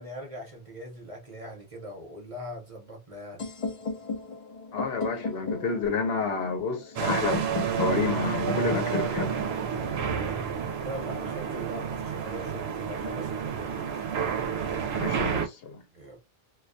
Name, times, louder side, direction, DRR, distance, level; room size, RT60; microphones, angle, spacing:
voice 1, 0.0-3.5 10.8-14.6 15.9-16.2, equal, 35° right, 0.8 m, -41 dB
sound 1, 3.4-11.3, left 4 dB, 45° left, 0.5 m, -36 dB
voice 2, 4.7-7.4 7.8-9.4 14.9-15.8, left 5 dB, 70° left, 0.9 m, -30 dB
sound 2, 7.0-15.5, right 7 dB, 80° right, 0.8 m, -30 dB
2.3 x 2.2 x 2.5 m
omnidirectional pair, 1.0 m